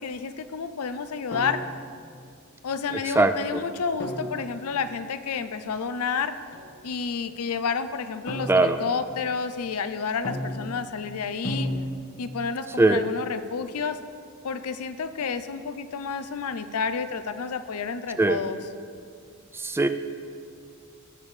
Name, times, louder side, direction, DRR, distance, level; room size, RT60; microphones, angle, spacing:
voice 1, 0.0-1.7 2.6-6.4 6.8-11.7 12.2-14.0 14.4-18.6, left 5 dB, 75° left, 11 dB, 0.5 m, -30 dB
sound 1, 1.3-2.0 4.0-4.6 6.5-6.7 8.3-9.0 10.2-10.9 11.4-12.4, equal, 55° left, 1.4 m, -33 dB
voice 2, 8.5-8.8 12.8-13.0 18.2-18.4 19.5-19.9, right 2 dB, 10° right, 9 dB, 0.3 m, -20 dB
19.0 x 7.0 x 3.2 m, 2.3 s
head